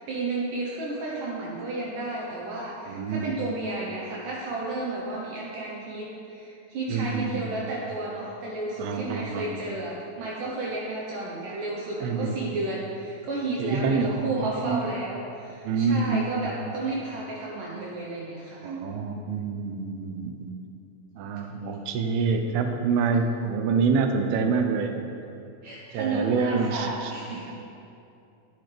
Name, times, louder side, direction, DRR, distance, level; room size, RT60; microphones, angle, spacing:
voice 1, 0.0-18.7 25.6-27.5, right 2 dB, 70° right, -4 dB, 2.3 m, -32 dB
voice 2, 2.9-3.3 6.9-7.5 8.8-9.6 12.0-12.4 13.6-14.8 15.7-16.8 18.6-20.5 21.2-25.0 25.9-27.1, right 5 dB, 90° right, 5 dB, 2.7 m, -27 dB
11.0 x 9.5 x 3.3 m, 2.7 s
omnidirectional pair, 4.3 m